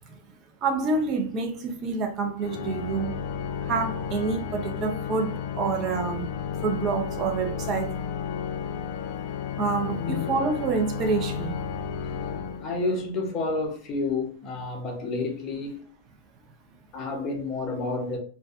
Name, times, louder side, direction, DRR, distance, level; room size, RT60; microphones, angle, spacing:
voice 1, 0.6-3.2 3.6-6.3 6.6-7.9 9.6-11.6, right 4 dB, 30° right, 0.6 m, -27 dB
Organ, 2.4-13.2, left 7 dB, 55° left, 0.3 m, -33 dB
voice 2, 10.0-10.4 12.1-12.2 12.6-15.9 16.9-18.2, left 3 dB, 30° left, 0.7 m, -30 dB
2.5 x 2.3 x 2.4 m
hypercardioid pair, 140°, 0 cm